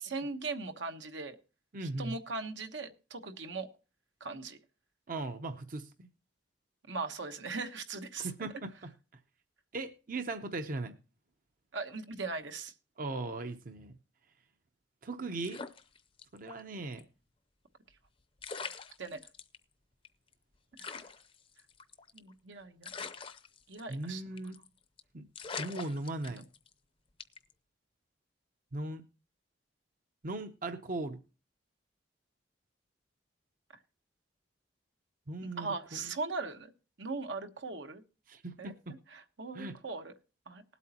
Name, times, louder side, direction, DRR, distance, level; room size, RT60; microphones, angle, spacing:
voice 1, 0.0-1.4 1.8-3.7 4.2-4.6 6.9-8.5 11.7-12.7 19.0-19.2 20.8-21.0 22.1-22.9 23.7-24.2 26.3-26.4 35.4-36.7 37.0-38.0 38.6-40.1 40.5-40.6, right 3 dB, 80° right, 6 dB, 1.2 m, -39 dB
voice 2, 1.7-2.1 5.1-6.1 8.2-8.9 9.7-11.0 13.0-13.9 15.0-15.6 16.3-17.0 23.9-24.6 25.1-25.2 25.6-26.5 28.7-29.0 30.2-31.2 35.3-36.0 38.3-38.9 39.5-39.8, right 2 dB, 50° right, 7 dB, 0.7 m, -38 dB
sound 1, 15.4-16.6 16.9-17.0 18.0-18.1 18.4-19.6 20.0-20.1 20.3-20.4 20.8-22.3 22.8-24.1 24.4-24.7 25.0-25.1 25.3-26.7 27.2-27.5, left 5 dB, 30° left, 0.6 m, -43 dB
19.5 x 8.2 x 2.9 m, 0.33 s
head